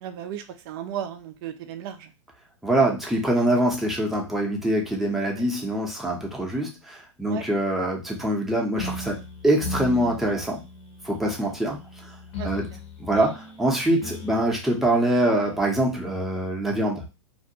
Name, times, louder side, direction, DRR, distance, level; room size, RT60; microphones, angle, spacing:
voice 1, 0.0-2.1 7.3-7.4 12.4-12.5, right 10 dB, 45° right, 8 dB, 0.4 m, -34 dB
voice 2, 2.6-9.2 9.4-10.6 11.0-11.8 12.4-12.7 13.0-17.0, right 1 dB, ahead, -2 dB, 0.6 m, -24 dB
sound 1, 8.8-16.3, left 2 dB, 65° left, 0.9 m, -38 dB
2.5 x 2.2 x 2.7 m, 0.29 s
hypercardioid pair, 110°, 17 cm